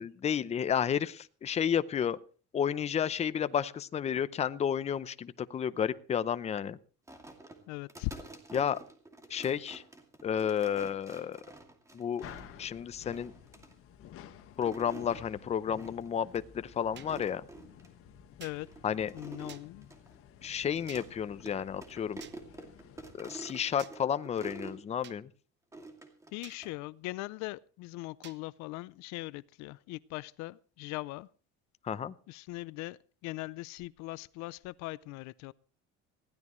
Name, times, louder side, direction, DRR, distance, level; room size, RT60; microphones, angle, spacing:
voice 1, 0.0-2.2 2.5-6.8 8.5-8.8 9.3-9.8 10.2-11.4 11.9-12.2 12.6-13.3 14.6-17.4 18.8-19.1 20.4-22.2 23.1-25.3 31.8-32.1, left 8 dB, 20° left, 0.7 m, -31 dB
sound 1, 7.1-12.6 13.1-13.7 14.4-15.2 15.8-16.1 16.3-16.4 16.9-17.9 18.4-21.1 21.4-21.5 21.8-24.8 25.7-26.8, right 2 dB, 10° right, 2.5 m, -48 dB
voice 2, 7.7-8.1 18.4-18.7 19.1-19.9 26.3-31.3 32.3-35.5, left 20 dB, 65° left, 0.6 m, -40 dB
sound 2, 12.2-23.1, left 9 dB, 50° left, 1.6 m, -53 dB
sound 3, 17.0-17.1 18.4-18.6 19.5-19.6 20.9-21.0 22.2-22.4 23.8-23.9 25.0-25.2 26.4-26.6 28.2-28.4, right 10 dB, 40° right, 1.0 m, -50 dB
20.5 x 16.0 x 3.2 m
cardioid pair, 150°, 30 cm